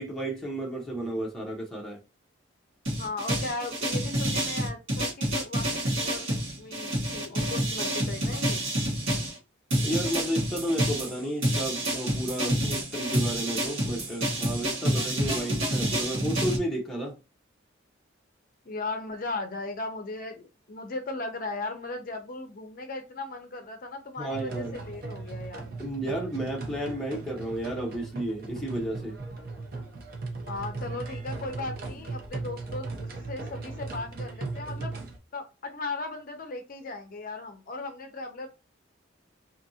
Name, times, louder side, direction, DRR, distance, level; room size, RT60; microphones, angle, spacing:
voice 1, 0.0-2.0 9.8-17.1 24.2-24.8 25.8-29.2, right 1 dB, ahead, 0.6 m, -32 dB
sound 1, 2.9-9.3 9.7-16.6, right 1 dB, 75° right, 1.3 m, -28 dB
voice 2, 3.0-8.6 18.6-25.7 30.5-34.9 35.3-38.5, left 3 dB, 45° left, 0.5 m, -37 dB
sound 2, 24.3-35.2, right 3 dB, 50° right, 0.6 m, -37 dB
2.7 x 2.5 x 2.7 m
head